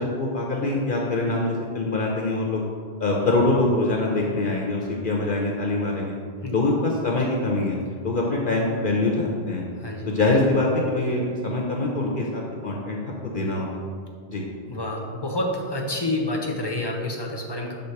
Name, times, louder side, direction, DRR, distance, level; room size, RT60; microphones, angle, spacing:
voice 1, 0.0-2.6 3.0-6.1 6.5-7.8 8.0-9.6 10.1-13.8 14.3-14.4, left 2 dB, 50° left, -1 dB, 0.8 m, -24 dB
voice 2, 14.7-17.7, left 1 dB, 25° left, -1 dB, 0.7 m, -28 dB
6.5 x 3.8 x 5.7 m, 2.1 s
omnidirectional pair, 1.2 m